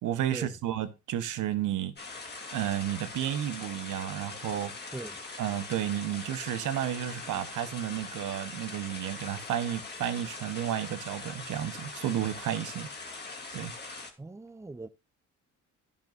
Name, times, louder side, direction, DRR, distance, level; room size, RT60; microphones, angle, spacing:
voice 1, 0.0-1.9 2.5-4.7 5.4-12.9 13.5-13.7, right 11 dB, 80° right, 1.2 m, -32 dB
sound 1, 2.0-14.1, left 3 dB, 35° left, 2.7 m, -42 dB
voice 2, 14.2-14.9, right 3 dB, 10° right, 0.7 m, -40 dB
10.5 x 7.1 x 2.6 m
cardioid pair, 90°, 30 cm